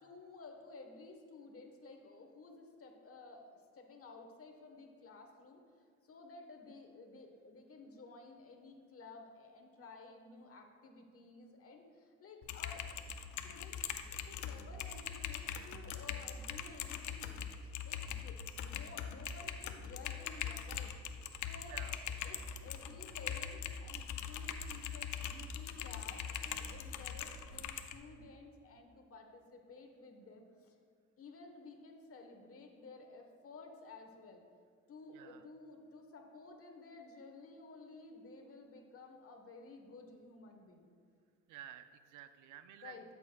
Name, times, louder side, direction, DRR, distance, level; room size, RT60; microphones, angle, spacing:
voice 1, 0.0-5.6 6.0-12.9 13.4-20.9 21.4-21.9 22.2-30.8 31.2-34.4 34.9-40.9 42.8-43.1, left 3 dB, 50° left, 3 dB, 1.2 m, -54 dB
Typing, 12.4-27.9, left 8 dB, 75° left, 0.6 m, -42 dB
voice 2, 41.5-43.1, right 10 dB, 90° right, 11 dB, 0.5 m, -52 dB
12.5 x 6.8 x 2.2 m, 2.2 s
cardioid pair, 90°, 30 cm